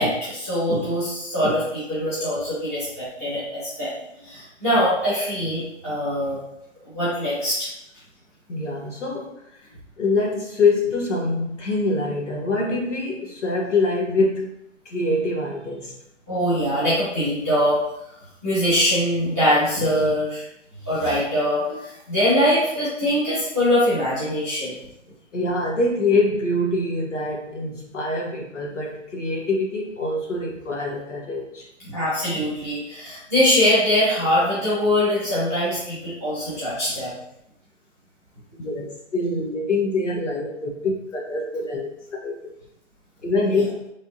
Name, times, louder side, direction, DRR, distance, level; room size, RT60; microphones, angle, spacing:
voice 1, 0.0-3.9 4.2-6.4 6.9-7.7 16.3-17.8 18.4-20.4 20.8-24.8 31.8-37.1, equal, 15° left, -12 dB, 1.3 m, -22 dB
voice 2, 8.5-9.4 10.0-14.5 14.8-15.9 25.3-31.7 38.6-38.9 39.1-41.9 42.2-42.3 43.2-43.8, left 2 dB, 75° left, -2 dB, 1.2 m, -24 dB
4.2 x 3.4 x 2.7 m, 0.79 s
hypercardioid pair, 180°, 37 cm